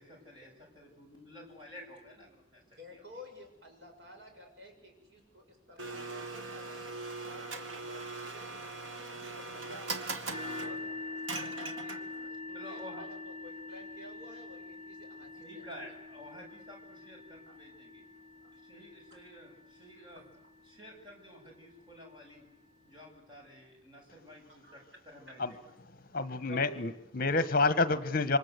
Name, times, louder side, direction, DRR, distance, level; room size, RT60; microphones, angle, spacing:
voice 1, 0.0-2.6 2.9-3.0 12.5-13.0 15.1-18.0 18.5-20.2 20.7-22.4 22.8-24.8 25.1-25.6 26.5-26.6, left 1 dB, 25° right, 0 dB, 7.9 m, -51 dB
voice 2, 2.7-8.5 9.1-11.9 12.2-15.7 17.4-17.6 18.4-18.6 19.1-19.3 19.8-19.9 20.2-20.5 24.4-25.0, left 1 dB, 60° right, 2 dB, 7.6 m, -53 dB
Domestic sounds home sounds, 5.8-12.3, right 3 dB, 90° right, 2.3 m, -41 dB
sound 1, 10.3-21.8, left 3 dB, 40° right, 3.9 m, -45 dB
voice 3, 26.1-28.4, left 3 dB, 50° left, 12 dB, 1.2 m, -28 dB
28.0 x 24.5 x 8.2 m, 0.83 s
head